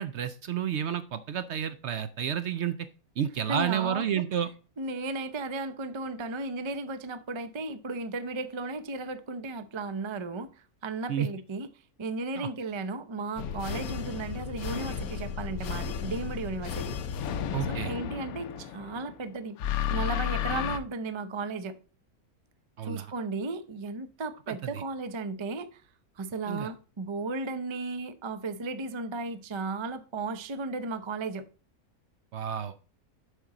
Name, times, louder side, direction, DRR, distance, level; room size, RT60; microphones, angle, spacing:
voice 1, 0.0-2.9 3.2-4.5 11.1-11.3 12.4-12.5 17.5-17.9 22.8-23.1 24.5-24.8 26.5-26.7 32.3-32.7, right 9 dB, 65° right, 0.7 m, -31 dB
voice 2, 3.5-4.2 4.8-11.7 12.0-17.0 17.7-19.6 19.9-21.8 22.8-25.8 26.2-31.5, right 3 dB, 45° right, 0.3 m, -35 dB
sound 1, 13.4-19.1 19.6-20.8, left 8 dB, 75° left, 1.1 m, -33 dB
8.1 x 5.9 x 3.7 m
omnidirectional pair, 1.5 m